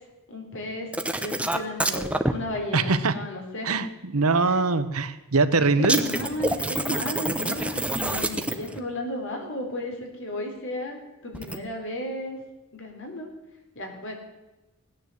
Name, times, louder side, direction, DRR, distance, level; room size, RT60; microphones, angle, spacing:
voice 1, 0.3-0.9 1.2-3.7 4.4-4.6 5.8-11.0 11.2-12.4 12.7-13.3 13.8-14.1, left 1 dB, 60° left, 2 dB, 3.8 m, -34 dB
sound 1, 0.9-2.3 5.8-8.8 11.3-11.6, right 1 dB, 5° right, 0.8 m, -27 dB
voice 2, 2.7-3.1 3.6-6.0, right 3 dB, 75° right, 12 dB, 1.0 m, -22 dB
17.0 x 10.0 x 7.9 m, 1.1 s
head